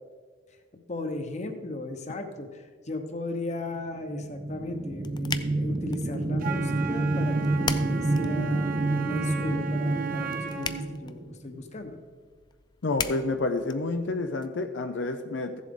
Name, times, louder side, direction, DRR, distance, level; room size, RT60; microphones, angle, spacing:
voice 1, 0.9-8.6 8.9-12.0, left 2 dB, 40° left, 6 dB, 1.0 m, -36 dB
sound 1, 3.9-11.6, right 2 dB, 25° right, 0.5 m, -29 dB
sound 2, 4.5-14.5, left 6 dB, 25° left, 0.3 m, -40 dB
Wind instrument woodwind instrument, 6.4-10.9, right 7 dB, 50° right, 0.9 m, -35 dB
voice 2, 12.8-15.6, left 2 dB, 80° left, 7 dB, 0.6 m, -29 dB
15.0 x 7.4 x 3.8 m, 1.6 s
head